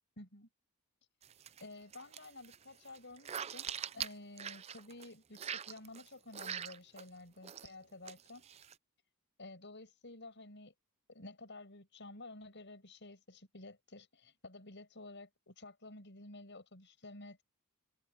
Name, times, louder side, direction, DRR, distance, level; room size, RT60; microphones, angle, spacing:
voice 1, 0.2-0.5 1.6-8.4 9.4-10.7 11.1-17.4, left 2 dB, 55° left, 7.0 m, -52 dB
sound 1, 1.2-1.6 1.9-5.1 5.3-7.1 7.4-7.7 8.0-8.7, right 8 dB, 30° right, 0.4 m, -43 dB
open air
head